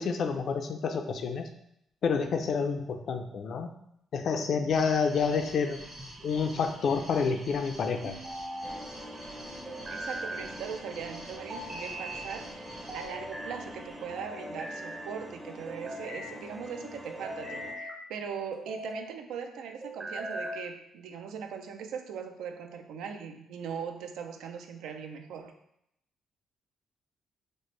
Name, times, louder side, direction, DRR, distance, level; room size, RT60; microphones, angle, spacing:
voice 1, 0.0-1.5 2.0-3.7 4.1-5.8 6.2-8.2, left 5 dB, 60° left, 6 dB, 0.4 m, -28 dB
sound 1, 4.7-14.0, right 1 dB, 70° right, 1.3 m, -48 dB
sound 2, 6.0-6.7 8.0-8.8 9.6-10.4 11.5-12.3 12.9-13.5 14.2-15.0 15.7-16.3 17.0-18.0 18.5-19.0 19.8-20.6, right 1 dB, 35° right, 0.9 m, -40 dB
sound 3, 8.6-17.7, equal, 15° right, 0.5 m, -45 dB
voice 2, 9.9-12.7 12.9-25.5, right 7 dB, 85° right, 6 dB, 0.4 m, -40 dB
4.1 x 2.1 x 3.1 m, 0.77 s
cardioid pair, 90°, 0 cm